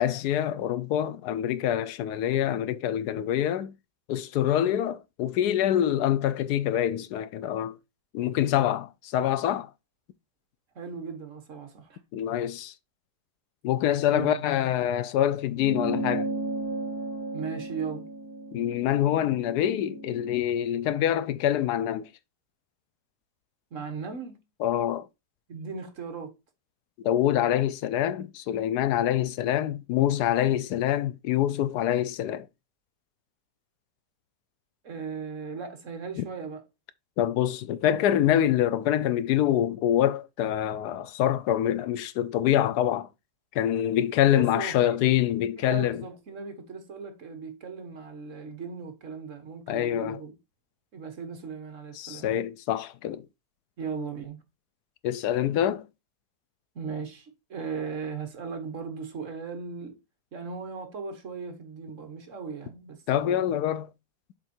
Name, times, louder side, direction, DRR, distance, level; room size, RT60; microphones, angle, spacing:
voice 1, 0.0-3.7 4.1-7.8 8.1-9.7 12.1-12.7 13.6-16.3 18.5-22.1 24.6-25.1 27.0-32.5 36.2-36.3 37.2-43.1 43.5-46.0 49.7-50.2 52.0-53.2 55.0-55.9 63.1-63.9, left 11 dB, 80° left, 1.1 m, -25 dB
voice 2, 10.7-12.0 14.1-14.6 17.3-18.1 23.7-24.4 25.5-26.3 34.8-36.6 44.3-45.0 45.6-50.3 50.9-52.3 53.8-54.4 56.7-60.0 60.3-63.6, right 5 dB, 55° right, 1.5 m, -37 dB
sound 1, 15.5-20.3, right 2 dB, 40° left, 2.6 m, -34 dB
7.3 x 3.8 x 4.3 m
omnidirectional pair, 1.7 m